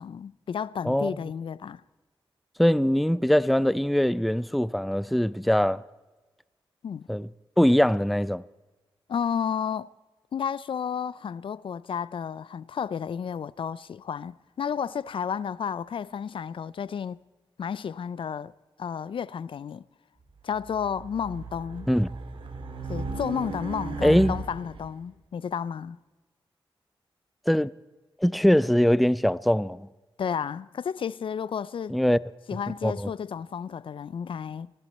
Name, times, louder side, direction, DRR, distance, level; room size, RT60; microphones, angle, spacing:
voice 1, 0.0-1.8 6.8-7.1 9.1-9.9 10.3-17.2 17.6-18.5 18.8-19.9 20.4-21.9 22.9-26.0 30.2-32.0 32.5-34.7, left 7 dB, 70° left, 0.4 m, -32 dB
voice 2, 0.8-1.2 2.6-5.8 7.1-7.3 7.6-8.4 21.9-22.1 24.0-24.4 27.5-27.7 28.2-29.9 31.9-32.2 32.8-33.1, equal, ahead, 0.4 m, -22 dB
Race car auto racing, 20.5-24.9, right 4 dB, 70° right, 2.0 m, -36 dB
21.0 x 14.5 x 4.2 m
cardioid pair, 75°, 9 cm